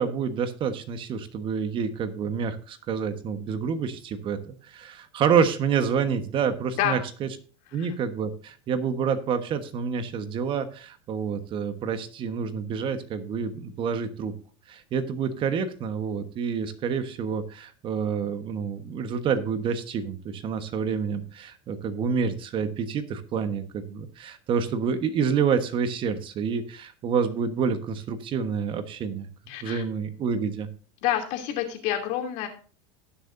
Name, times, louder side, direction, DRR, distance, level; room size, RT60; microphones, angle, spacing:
voice 1, 0.0-7.3 7.7-14.3 14.7-29.3 29.6-30.7, right 6 dB, 35° right, 10 dB, 1.3 m, -28 dB
voice 2, 29.5-29.8 31.0-32.5, left 11 dB, 55° left, 4 dB, 2.8 m, -28 dB
18.5 x 6.8 x 2.6 m, 0.40 s
supercardioid pair, 125°, 14 cm